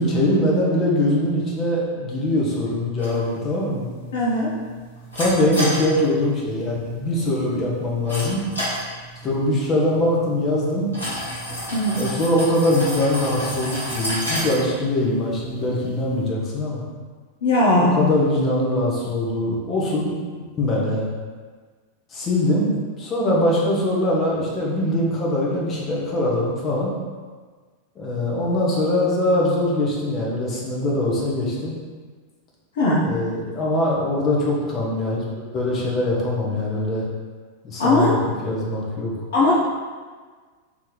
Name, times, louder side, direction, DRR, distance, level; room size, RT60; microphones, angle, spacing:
voice 1, 0.0-3.9 5.1-8.4 9.2-10.9 12.0-16.8 17.8-20.1 20.5-21.1 22.1-22.7 23.0-26.9 28.0-31.8 33.0-37.1 37.6-39.1, left 1 dB, 30° left, -4 dB, 0.9 m, -22 dB
sound 1, 3.0-16.3, equal, 75° left, 1.3 m, -32 dB
voice 2, 4.1-4.5 11.7-12.0 17.4-17.9 32.7-33.0 37.8-38.1 39.3-39.5, left 1 dB, 60° left, -5 dB, 0.6 m, -18 dB
3.0 x 2.8 x 3.8 m, 1.5 s
figure-of-eight pair, 90°, 0 cm